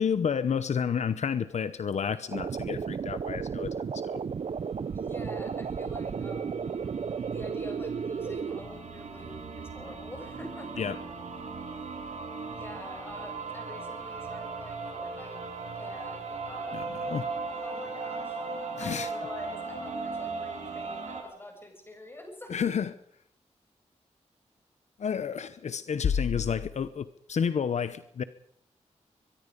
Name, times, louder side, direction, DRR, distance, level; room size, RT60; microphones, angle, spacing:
voice 1, 0.0-4.2 10.8-11.0 16.7-17.2 18.7-19.1 22.5-22.9 25.0-28.2, left 7 dB, 70° left, 13 dB, 0.9 m, -30 dB
sound 1, 2.3-8.6, right 6 dB, 55° right, 0.8 m, -34 dB
sound 2, 4.3-21.2, right 4 dB, 80° right, 7.6 m, -38 dB
voice 2, 4.9-6.7 7.3-10.8 11.7-11.9 12.5-15.4 15.7-17.0 17.6-18.4 18.8-22.7, left 1 dB, 20° left, 3 dB, 7.7 m, -46 dB
23.5 x 22.5 x 5.3 m, 0.70 s
wide cardioid pair, 150°, 12 cm